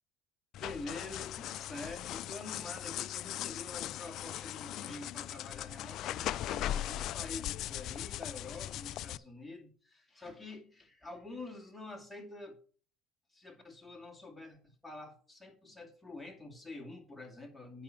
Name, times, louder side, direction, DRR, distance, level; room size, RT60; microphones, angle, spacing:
sound 1, 0.5-9.2, left 13 dB, 55° left, 0.4 m, -39 dB
voice 1, 0.6-12.6 13.3-17.8, left 2 dB, 5° left, 2.3 m, -47 dB
9.3 x 5.9 x 5.8 m
supercardioid pair, 115°, 0 cm